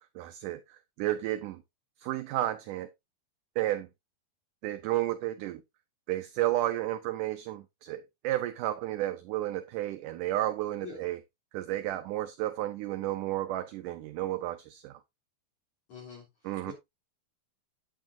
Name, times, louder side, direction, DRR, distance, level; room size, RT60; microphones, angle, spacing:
voice 1, 0.2-1.6 2.0-2.9 3.6-3.9 4.6-5.6 6.1-11.2 11.5-15.0 16.4-16.7, right 14 dB, 75° right, 2.0 m, -32 dB
voice 2, 15.9-16.7, left 5 dB, 50° left, 4.4 m, -46 dB
9.2 x 8.9 x 2.6 m
omnidirectional pair, 4.3 m